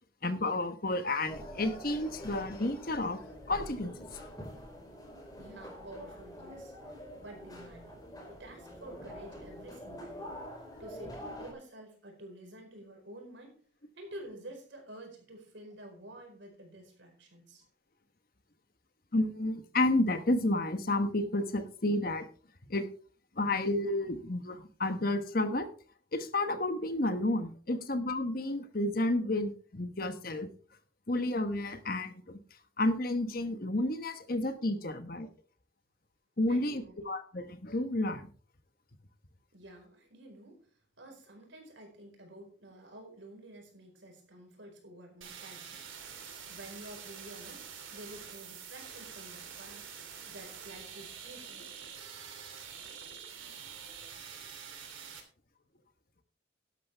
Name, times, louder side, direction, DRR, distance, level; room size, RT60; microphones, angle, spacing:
voice 1, 0.2-3.2 3.5-4.3 19.1-22.3 22.7-22.9 23.4-25.7 26.1-30.5 31.1-32.4 32.8-35.3 36.4-38.3, left 2 dB, 50° left, 9 dB, 1.2 m, -31 dB
sound 1, 1.3-11.5, equal, 20° left, 4.6 m, -46 dB
voice 2, 5.4-6.7 7.2-10.3 10.8-13.6 13.9-17.6 36.5-37.0 39.5-40.7 41.0-45.9 46.5-49.8 50.3-51.7, right 1 dB, 70° right, 2 dB, 4.7 m, -50 dB
sound 2, 45.2-55.2, right 7 dB, 90° right, 2.8 m, -46 dB
12.0 x 11.5 x 3.5 m, 0.41 s
head